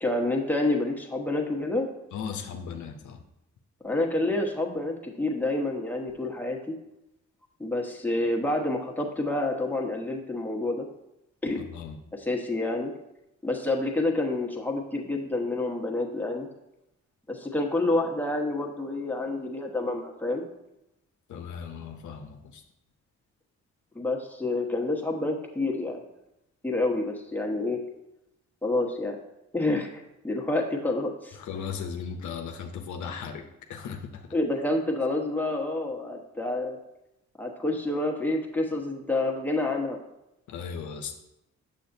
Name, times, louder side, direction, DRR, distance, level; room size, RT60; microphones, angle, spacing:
voice 1, 0.0-1.9 3.8-6.7 7.6-10.9 11.4-11.6 12.1-12.9 13.4-16.5 17.3-20.4 23.9-26.0 26.6-27.8 28.6-29.2 29.5-31.4 34.3-36.8 37.4-40.0, left 2 dB, 5° left, 0 dB, 1.2 m, -28 dB
voice 2, 2.1-3.2 11.6-12.0 21.3-22.6 31.4-34.3 40.5-41.1, left 6 dB, 80° left, 4 dB, 0.6 m, -37 dB
7.0 x 6.2 x 2.7 m, 0.88 s
supercardioid pair, 50°, 30 cm